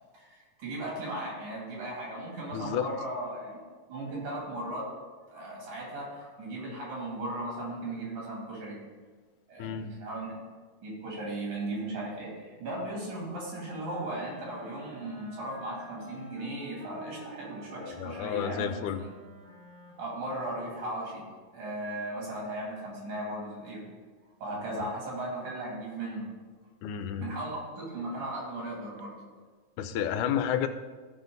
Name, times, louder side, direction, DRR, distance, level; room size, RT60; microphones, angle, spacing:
voice 1, 0.1-3.6 3.9-4.9 5.3-8.8 9.5-10.4 10.8-19.1 20.0-21.2 21.5-23.8 24.4-26.3 27.2-29.1, right 1 dB, 80° right, -4 dB, 4.4 m, -37 dB
voice 2, 2.5-2.9 9.6-9.9 17.8-19.0 26.8-27.3 29.8-30.7, left 9 dB, 90° left, 9 dB, 2.1 m, -31 dB
Wind instrument woodwind instrument, 13.6-21.0, right 1 dB, 50° right, 3.9 m, -49 dB
14.0 x 5.7 x 3.9 m, 1.4 s
omnidirectional pair, 3.4 m